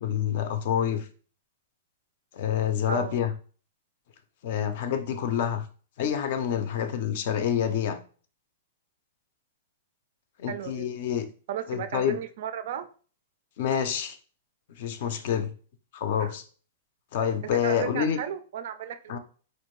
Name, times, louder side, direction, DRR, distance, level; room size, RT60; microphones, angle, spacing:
voice 1, 0.0-1.1 2.3-3.3 4.4-5.7 6.0-8.0 10.4-11.3 11.7-12.2 13.6-14.2 14.8-15.5 15.9-16.4 17.1-18.2 19.1-19.2, left 9 dB, 45° left, 9 dB, 0.5 m, -27 dB
voice 2, 2.9-3.2 10.5-10.9 11.5-12.9 16.2-16.3 17.4-19.2, right 9 dB, 50° right, 11 dB, 0.3 m, -34 dB
4.3 x 2.5 x 3.0 m, 0.40 s
supercardioid pair, 175°, 0 cm